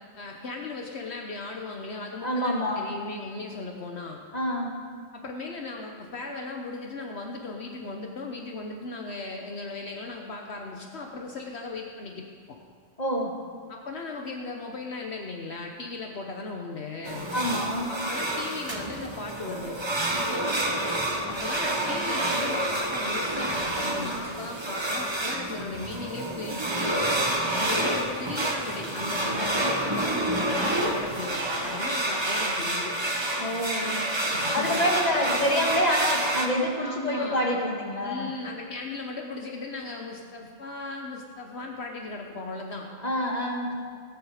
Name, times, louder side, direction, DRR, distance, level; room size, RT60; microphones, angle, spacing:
voice 1, 0.2-4.2 5.1-12.6 13.7-17.3 17.9-19.8 21.2-27.2 27.6-32.9 34.3-34.8 35.3-35.8 36.8-37.5 38.0-42.9, left 3 dB, 60° left, 2 dB, 1.2 m, -37 dB
voice 2, 2.2-2.8 4.3-4.7 13.0-13.4 17.3-17.9 33.4-34.1 34.5-38.3 43.0-43.8, equal, 35° left, -1 dB, 1.8 m, -27 dB
sound 1, 17.0-36.5, right 1 dB, 25° right, 1.1 m, -28 dB
18.0 x 9.5 x 4.9 m, 2.1 s
omnidirectional pair, 1.2 m